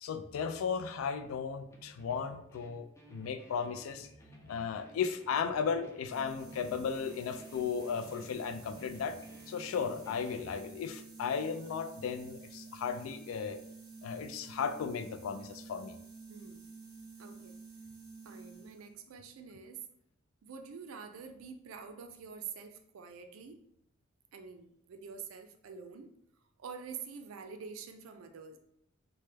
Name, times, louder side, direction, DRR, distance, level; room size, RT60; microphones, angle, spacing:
voice 1, 0.0-4.1 4.5-9.2 9.5-13.6 14.0-16.0, left 6 dB, 85° left, 9 dB, 0.3 m, -35 dB
sound 1, 1.7-10.6, equal, 15° left, 0.4 m, -55 dB
sound 2, 6.1-19.0, right 4 dB, 20° right, 0.7 m, -51 dB
voice 2, 16.3-16.7 17.2-17.6 18.2-19.8 20.4-23.6 24.3-26.1 26.6-28.6, right 6 dB, 85° right, 6 dB, 0.4 m, -47 dB
3.2 x 2.1 x 3.2 m, 0.73 s
head